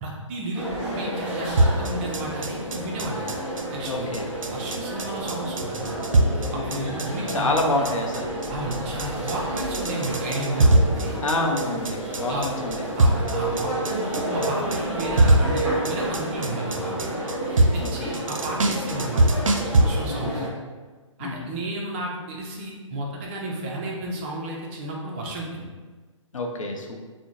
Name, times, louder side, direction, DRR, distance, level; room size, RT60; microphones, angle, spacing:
voice 1, 0.0-3.3 3.7-6.0 6.5-7.5 8.5-11.2 12.3-12.4 13.0-17.2 17.7-19.4 19.7-20.4 21.2-25.7, right 1 dB, 20° right, -2 dB, 0.4 m, -32 dB
sound 1, 0.5-20.5, right 1 dB, 5° right, 1.0 m, -31 dB
sound 2, 1.6-19.8, right 1 dB, 80° right, 0.4 m, -22 dB
voice 2, 3.9-4.3 6.5-7.0 7.3-8.3 11.2-12.9 17.8-18.2 20.1-20.6 21.2-21.5 26.3-27.0, left 2 dB, 80° left, 2 dB, 0.6 m, -28 dB
3.6 x 2.0 x 3.0 m, 1.4 s
figure-of-eight pair, 140°, 17 cm